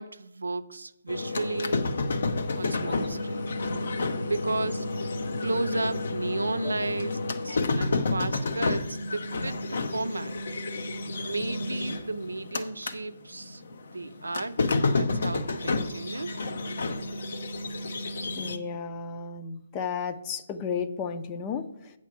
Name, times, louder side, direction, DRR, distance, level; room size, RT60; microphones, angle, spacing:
voice 1, 0.0-1.9 2.5-3.5 4.3-4.9 5.4-10.4 11.2-13.6 13.9-14.6 14.9-16.4, right 2 dB, 90° right, 0.5 m, -33 dB
sound 1, 1.1-13.0 13.3-18.6, left 3 dB, 65° left, 0.8 m, -30 dB
voice 2, 18.3-21.9, left 6 dB, 25° left, 0.6 m, -33 dB
8.2 x 4.4 x 6.0 m
figure-of-eight pair, 145°, 0 cm